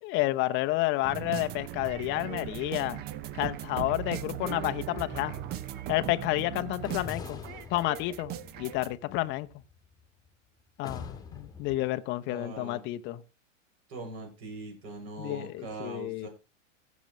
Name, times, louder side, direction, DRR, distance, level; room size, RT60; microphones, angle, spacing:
voice 1, 0.0-3.0 3.3-5.4 5.9-7.4 7.7-9.5 10.8-13.2 15.2-16.3, left 18 dB, 30° left, 0.7 m, -30 dB
sound 1, 1.0-8.9, right 12 dB, 25° right, 0.6 m, -38 dB
sound 2, 4.9-6.1 6.8-10.3 10.8-11.8, left 5 dB, 10° left, 1.5 m, -45 dB
voice 2, 12.3-12.8 13.9-16.3, right 2 dB, 55° right, 7.0 m, -41 dB
16.0 x 7.3 x 3.2 m
hypercardioid pair, 115°, 39 cm